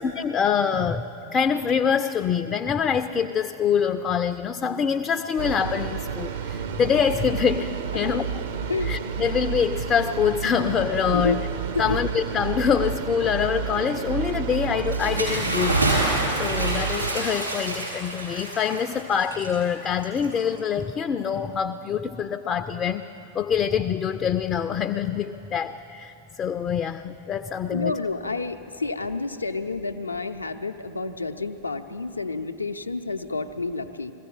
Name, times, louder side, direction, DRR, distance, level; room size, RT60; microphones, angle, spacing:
voice 1, 0.0-8.3 8.8-11.4 11.8-15.8 16.3-23.0 23.3-27.9, left 7 dB, 25° left, 7 dB, 0.4 m, -25 dB
sound 1, 5.4-17.1, right 7 dB, 55° right, 0.6 m, -30 dB
Bathtub (filling or washing) / Splash splatter, 14.8-20.7, right 2 dB, 80° right, 4.6 m, -28 dB
voice 2, 27.7-34.1, left 3 dB, 80° left, 7 dB, 0.5 m, -29 dB
21.5 x 15.5 x 3.8 m, 2.9 s
figure-of-eight pair, 90°, 0 cm